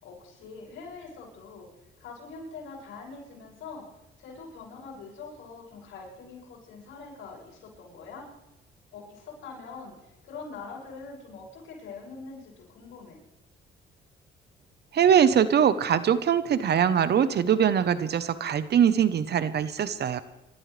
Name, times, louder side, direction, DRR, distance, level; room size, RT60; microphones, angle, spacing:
voice 1, 0.0-1.7 2.0-3.9 4.2-8.3 8.9-13.2, left 4 dB, 90° left, -2 dB, 6.9 m, -43 dB
voice 2, 14.9-20.2, right 8 dB, 55° right, 13 dB, 1.0 m, -22 dB
27.0 x 13.0 x 3.4 m, 0.94 s
cardioid pair, 90°, 20 cm